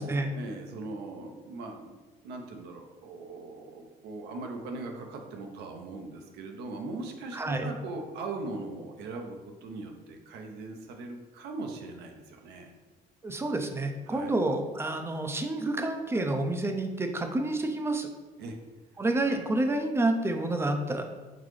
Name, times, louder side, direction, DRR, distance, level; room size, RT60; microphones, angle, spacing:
voice 1, 0.0-2.0 2.2-12.7 14.1-14.3 18.4-18.6 19.2-19.4, right 3 dB, 80° right, 3 dB, 0.7 m, -40 dB
voice 2, 7.3-7.7 13.2-18.1 19.0-21.2, right 2 dB, 15° right, 5 dB, 0.4 m, -29 dB
3.9 x 3.7 x 3.2 m, 1.2 s
cardioid pair, 110°, 17 cm